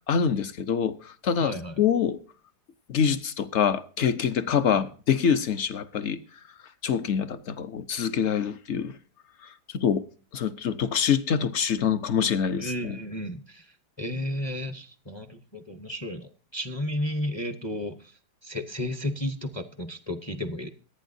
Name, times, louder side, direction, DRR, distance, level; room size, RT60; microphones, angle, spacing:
voice 1, 0.1-2.2 2.9-6.2 6.8-8.9 9.7-10.0 10.3-13.0, left 7 dB, 55° left, 0.8 m, -25 dB
voice 2, 1.4-1.8 4.7-4.8 12.6-13.6 14.0-17.9 18.4-20.7, left 1 dB, 25° left, 0.6 m, -33 dB
26.0 x 9.1 x 2.6 m
omnidirectional pair, 1.8 m